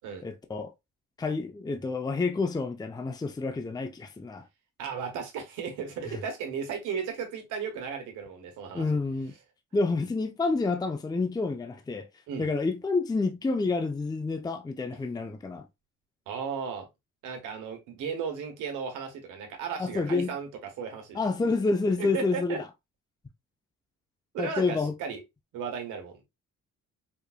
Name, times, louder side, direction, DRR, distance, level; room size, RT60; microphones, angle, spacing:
voice 1, 0.2-0.7 1.2-4.5 6.1-6.2 8.7-9.3 9.7-12.1 12.4-15.7 19.8-20.3 21.1-22.6 24.4-24.9, left 3 dB, 15° left, 0.5 m, -29 dB
voice 2, 4.8-8.8 12.3-12.5 16.3-16.9 17.2-21.2 22.0-22.6 24.3-25.2 25.5-26.2, right 6 dB, 90° right, 1.3 m, -35 dB
4.9 x 2.5 x 2.3 m
cardioid pair, 90°, 30 cm